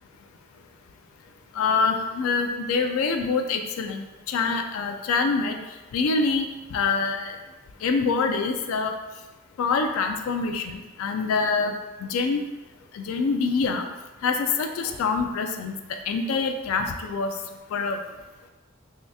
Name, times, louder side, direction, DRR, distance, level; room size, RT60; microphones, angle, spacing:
voice 1, 1.5-5.6 5.9-7.4 7.8-8.9 9.6-11.7 12.0-12.4 12.9-13.9 14.2-17.3 17.7-18.0, left 4 dB, 85° left, 5 dB, 0.3 m, -25 dB
3.1 x 2.7 x 3.4 m, 1.2 s
head